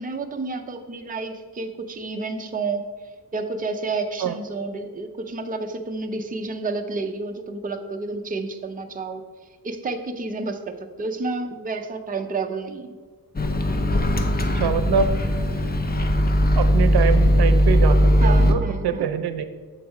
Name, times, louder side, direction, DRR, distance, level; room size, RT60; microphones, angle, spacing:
voice 1, 0.0-2.8 3.3-9.2 9.6-13.0 18.2-19.1, right 3 dB, 25° right, 5 dB, 0.5 m, -30 dB
Microwave oven, 13.4-18.5, equal, 25° left, 0.5 m, -19 dB
voice 2, 14.4-15.1 16.6-19.4, right 7 dB, 90° right, 10 dB, 0.6 m, -24 dB
7.2 x 4.0 x 4.8 m, 1.5 s
wide cardioid pair, 140°, 37 cm